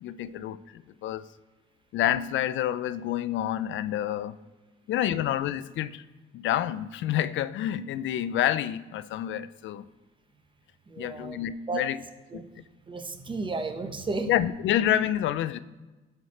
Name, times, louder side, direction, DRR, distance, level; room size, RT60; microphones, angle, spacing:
voice 1, 0.0-1.2 1.9-4.4 4.9-6.0 6.3-9.9 11.0-12.0 12.3-12.4 14.3-15.6, left 11 dB, 75° left, 0.4 m, -28 dB
voice 2, 10.9-11.4 11.7-11.8 12.3-12.5 12.9-14.3, right 3 dB, 25° right, 1.0 m, -33 dB
11.5 x 4.7 x 4.2 m
cardioid pair, 90°, 20 cm